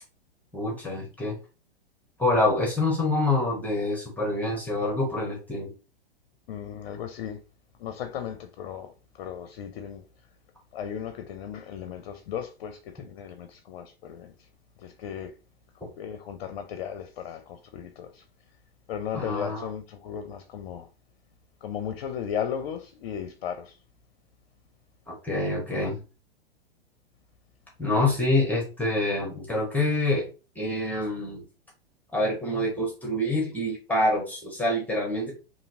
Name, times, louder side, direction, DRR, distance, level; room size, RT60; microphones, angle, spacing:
voice 1, 0.5-1.4 2.2-5.7 19.1-19.7 25.2-26.0 27.8-30.2 30.5-31.4 32.1-35.3, left 2 dB, 5° left, 1.0 m, -26 dB
voice 2, 6.5-7.4 7.8-10.0 10.7-14.5 14.8-15.3 15.7-18.2 18.9-20.9 21.6-23.8, left 8 dB, 55° left, 0.5 m, -36 dB
2.8 x 2.8 x 2.6 m
hypercardioid pair, 105°, 30 cm